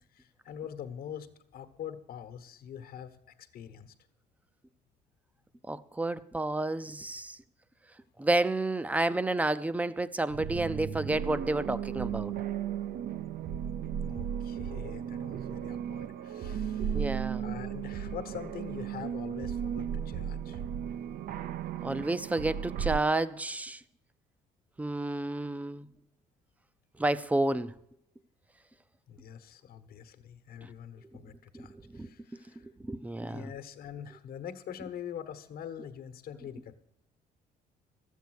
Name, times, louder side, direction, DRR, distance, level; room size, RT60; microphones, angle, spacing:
voice 1, 0.1-3.9 14.0-20.6 29.1-32.7 33.3-36.7, left 9 dB, 60° left, 1.2 m, -44 dB
voice 2, 5.7-7.4 8.2-12.3 16.9-17.4 21.8-23.8 24.8-25.9 27.0-27.7 30.6-30.7 31.5-32.1 32.6-33.5, right 2 dB, 10° right, 0.5 m, -30 dB
sound 1, 10.3-23.0, right 9 dB, 60° right, 0.5 m, -35 dB
12.5 x 8.3 x 6.3 m
cardioid pair, 110°, 17 cm